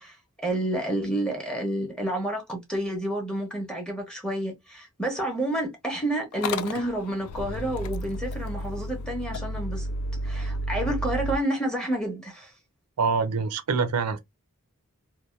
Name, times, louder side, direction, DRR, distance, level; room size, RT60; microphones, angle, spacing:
voice 1, 0.0-9.9 10.2-12.5, right 1 dB, 5° left, 0.8 m, -29 dB
Motor vehicle (road) / Engine starting, 6.3-11.4, equal, 70° left, 0.4 m, -32 dB
voice 2, 13.0-14.2, right 5 dB, 90° right, 0.5 m, -25 dB
2.7 x 2.2 x 2.3 m
head